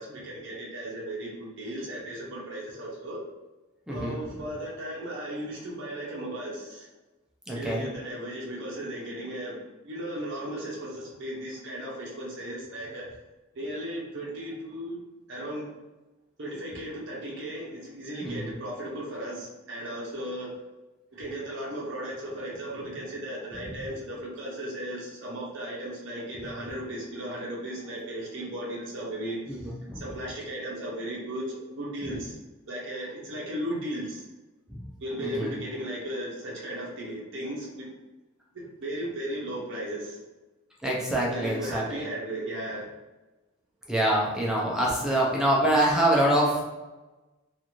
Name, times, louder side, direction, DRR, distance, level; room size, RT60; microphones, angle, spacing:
voice 1, 0.0-3.2 3.9-6.9 7.5-13.1 13.5-15.0 15.3-15.7 16.4-20.5 21.1-29.6 30.0-32.4 32.7-34.2 35.0-37.9 38.5-40.2 41.3-42.8, right 1 dB, 60° right, -4 dB, 0.7 m, -36 dB
voice 2, 3.9-4.2 7.5-7.9 18.2-18.5 23.6-23.8 29.5-30.0 32.0-32.1 34.7-34.8 35.2-35.5 40.8-42.0 43.9-46.6, right 1 dB, 5° right, -4 dB, 0.5 m, -25 dB
2.5 x 2.4 x 2.9 m, 1.1 s
head